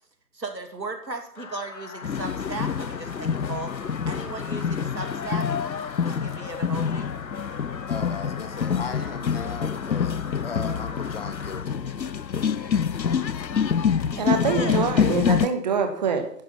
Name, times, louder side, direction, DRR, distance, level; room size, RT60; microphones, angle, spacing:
voice 1, 0.3-5.5 6.0-7.1 14.1-14.8, right 3 dB, 80° right, 2.8 m, -36 dB
sound 1, 1.4-11.7, left 4 dB, 50° left, 1.6 m, -41 dB
sound 2, 2.0-15.5, left 7 dB, 85° left, 0.8 m, -26 dB
voice 2, 7.9-10.1 10.4-12.0, left 5 dB, 35° left, 1.5 m, -37 dB
voice 3, 14.2-16.3, right 5 dB, 25° right, 1.5 m, -25 dB
11.5 x 9.9 x 5.9 m
figure-of-eight pair, 145°, 50 cm